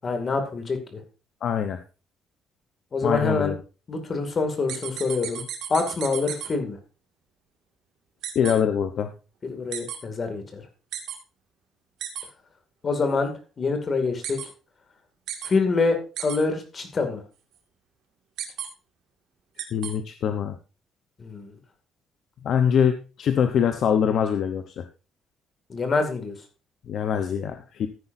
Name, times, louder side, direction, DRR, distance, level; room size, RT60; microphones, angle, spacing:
voice 1, 0.0-1.0 2.9-3.5 3.9-5.4 5.7-6.8 9.4-10.6 12.8-14.4 15.4-17.2 21.2-21.5 25.7-26.4, left 4 dB, 30° left, 5 dB, 2.3 m, -26 dB
voice 2, 1.4-1.8 3.0-3.6 8.3-9.1 19.7-20.6 22.4-24.8 26.9-27.9, left 8 dB, 50° left, 7 dB, 0.8 m, -23 dB
sound 1, 4.7-6.5 8.2-8.5 9.7-10.0 10.9-11.2 12.0-12.2 14.2-14.5 15.3-15.5 16.2-16.4 18.4-18.7 19.6-19.9, right 10 dB, 75° right, 2.0 m, -33 dB
14.0 x 9.9 x 2.7 m, 0.33 s
cardioid pair, 155°, 0 cm